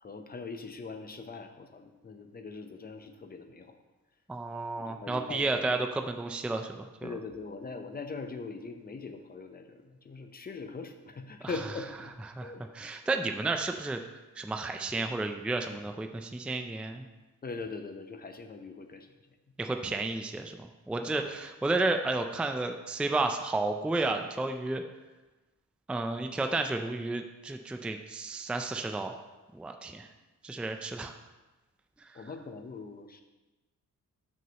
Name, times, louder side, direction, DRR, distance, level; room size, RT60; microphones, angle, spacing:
voice 1, 0.0-3.7 4.8-5.6 7.0-12.1 12.4-12.6 17.4-19.1 21.1-21.3 32.1-33.2, left 4 dB, 30° left, 6 dB, 0.7 m, -41 dB
voice 2, 4.3-7.2 11.4-11.6 12.2-14.0 14.4-17.1 19.6-24.8 25.9-29.2 29.5-30.1 30.4-31.1 32.1-32.3, right 2 dB, 5° right, 5 dB, 0.4 m, -32 dB
12.5 x 6.3 x 2.9 m, 1.1 s
wide cardioid pair, 135°, 32 cm